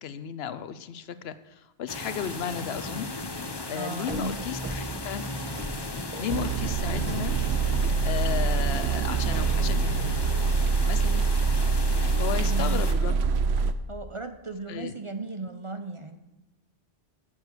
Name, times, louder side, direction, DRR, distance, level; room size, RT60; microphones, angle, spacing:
voice 1, 0.0-3.1 3.7-5.2 6.2-7.4 8.0-10.2 10.9-11.2 12.2-13.2 14.7-14.9, left 8 dB, 75° left, 13 dB, 0.9 m, -34 dB
sound 1, 1.9-12.9, left 3 dB, 25° left, 0.8 m, -36 dB
voice 2, 3.8-4.5 12.4-12.9 13.9-16.2, right 3 dB, 35° right, 8 dB, 0.6 m, -36 dB
sound 2, 4.1-10.1, right 2 dB, 10° right, 1.0 m, -39 dB
sound 3, 6.3-13.7, right 4 dB, 80° right, 0.9 m, -25 dB
10.5 x 7.3 x 6.7 m, 1.0 s
omnidirectional pair, 1.1 m